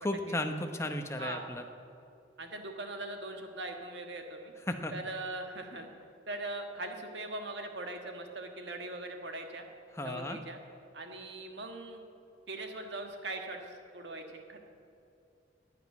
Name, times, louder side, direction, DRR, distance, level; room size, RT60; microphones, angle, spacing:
voice 1, 0.0-1.6 4.7-4.9 10.0-10.4, left 1 dB, 15° left, 5 dB, 0.8 m, -34 dB
voice 2, 1.2-1.5 2.4-4.5 4.9-5.9 6.3-9.6 10.0-10.6 10.9-12.0 12.5-14.7, right 2 dB, 65° right, 4 dB, 1.6 m, -41 dB
11.5 x 9.5 x 9.5 m, 2.6 s
head